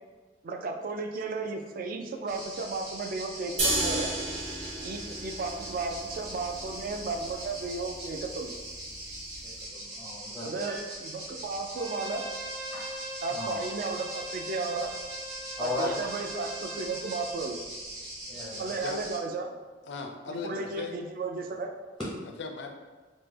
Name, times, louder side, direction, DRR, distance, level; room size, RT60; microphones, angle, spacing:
voice 1, 0.4-4.1 4.8-8.5 10.4-12.2 13.2-14.9 15.6-17.6 18.6-19.5 20.3-21.7, right 3 dB, 50° right, 4 dB, 0.3 m, -34 dB
sound 1, 2.3-19.2, right 1 dB, 70° right, 1.1 m, -41 dB
sound 2, 3.6-9.6, right 1 dB, 35° right, 1.0 m, -34 dB
voice 2, 9.4-10.8 12.7-12.9 13.3-13.6 15.6-15.9 18.3-18.7, left 2 dB, ahead, -7 dB, 0.5 m, -36 dB
Bowed string instrument, 11.7-17.4, right 1 dB, 90° right, 0.9 m, -41 dB
voice 3, 19.8-20.9 22.4-22.7, left 4 dB, 65° left, 4 dB, 0.4 m, -37 dB
3.1 x 2.1 x 3.2 m, 1.3 s
head